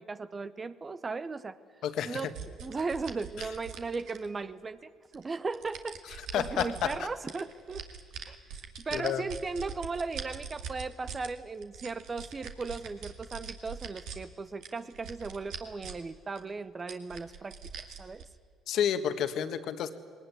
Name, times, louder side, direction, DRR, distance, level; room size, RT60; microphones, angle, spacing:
voice 1, 0.0-1.6 2.0-2.3 2.6-7.8 8.2-8.4 8.8-17.6 18.0-18.3, right 4 dB, 30° right, 13 dB, 0.8 m, -37 dB
voice 2, 1.8-2.3 6.3-7.1 8.9-9.3 18.7-19.9, left 9 dB, 65° left, 10 dB, 1.5 m, -30 dB
sound 1, 2.3-4.5 5.1-7.0 7.3-11.3 11.6-14.2 14.6-16.1 16.4-16.5 16.9-18.2, right 6 dB, 70° right, 2.2 m, -42 dB
20.0 x 19.5 x 9.8 m, 2.1 s
supercardioid pair, 65°, 0 cm